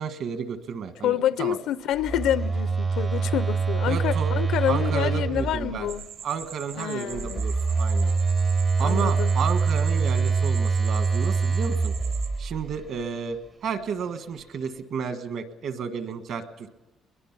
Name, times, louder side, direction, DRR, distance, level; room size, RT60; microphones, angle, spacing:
voice 1, 0.0-1.6 3.8-4.3 4.7-5.9 6.2-8.1 8.8-11.9 12.4-16.7, right 6 dB, 55° right, 9 dB, 1.4 m, -32 dB
voice 2, 1.0-6.0 6.8-7.4 8.8-9.3, left 11 dB, 80° left, 14 dB, 0.6 m, -27 dB
Telephone, 1.9-6.0 7.1-12.8, right 4 dB, 25° right, 0.6 m, -25 dB
sound 1, 5.9-12.3, right 9 dB, 80° right, 3.1 m, -42 dB
22.0 x 21.5 x 5.9 m, 1.1 s
cardioid pair, 160°, 0 cm